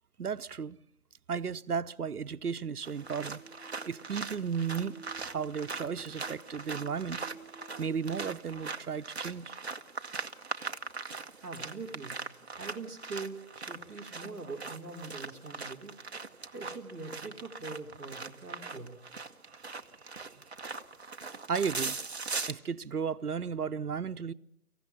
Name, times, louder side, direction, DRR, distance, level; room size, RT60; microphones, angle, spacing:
voice 1, 0.2-0.8 1.3-3.4 3.8-7.2 7.8-9.6 10.2-10.3 21.5-22.0 22.5-24.3, right 6 dB, 80° right, 0.9 m, -34 dB
sound 1, 2.8-22.5, right 4 dB, 45° right, 0.9 m, -41 dB
sound 2, 3.0-8.2, right 5 dB, 15° left, 2.0 m, -53 dB
voice 2, 11.4-12.2 12.6-16.0 16.3-19.0, right 3 dB, 5° right, 1.7 m, -43 dB
25.0 x 15.5 x 7.1 m
figure-of-eight pair, 170°, 45 cm